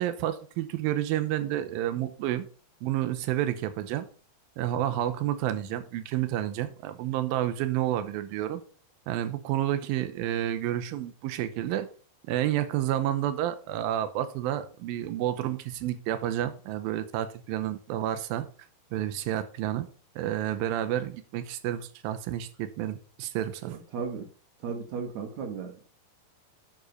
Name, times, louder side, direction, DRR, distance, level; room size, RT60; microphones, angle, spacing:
voice 1, 0.0-2.5 2.8-4.1 4.6-8.6 9.1-11.9 12.3-18.5 18.9-19.9 20.2-23.8, right 12 dB, 80° right, 2.6 m, -30 dB
voice 2, 23.6-24.3 24.6-25.7, right 6 dB, 60° right, 2.2 m, -35 dB
7.8 x 6.6 x 5.1 m
omnidirectional pair, 4.3 m